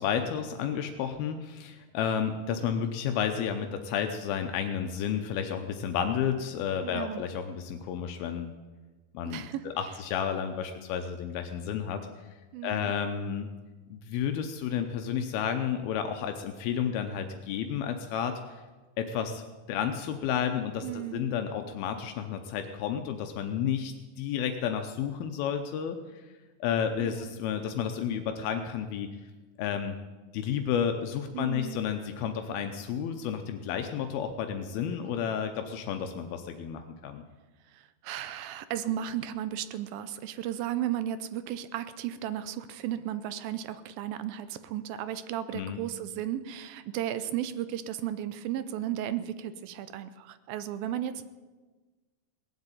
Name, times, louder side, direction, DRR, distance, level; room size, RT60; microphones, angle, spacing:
voice 1, 0.0-8.5 9.1-12.0 12.6-13.5 13.9-18.4 19.0-19.4 19.7-26.2 26.6-29.1 29.6-30.0 30.3-37.2 45.5-45.8, left 8 dB, 80° left, 6 dB, 2.6 m, -31 dB
voice 2, 6.8-7.2 9.3-9.7 12.5-12.9 20.8-21.3 27.0-27.3 31.3-31.8 37.7-51.2, right 11 dB, 80° right, 13 dB, 2.3 m, -34 dB
18.5 x 8.0 x 8.9 m, 1.3 s
omnidirectional pair, 4.4 m